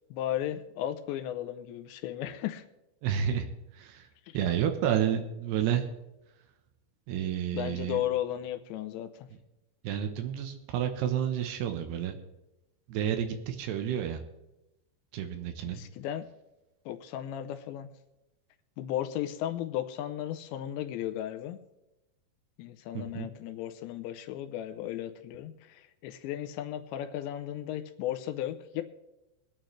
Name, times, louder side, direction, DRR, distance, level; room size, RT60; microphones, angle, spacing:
voice 1, 0.1-2.6 4.3-4.4 7.5-9.3 15.7-16.3 16.9-17.9 18.8-21.6 22.6-28.8, left 12 dB, 90° left, 8 dB, 3.0 m, -35 dB
voice 2, 3.0-3.5 3.7-4.1 4.3-5.9 7.1-8.0 9.8-12.2 12.9-14.2 15.1-15.8 22.9-23.3, right 9 dB, 75° right, 6 dB, 2.9 m, -30 dB
22.5 x 9.1 x 3.2 m, 0.94 s
omnidirectional pair, 5.1 m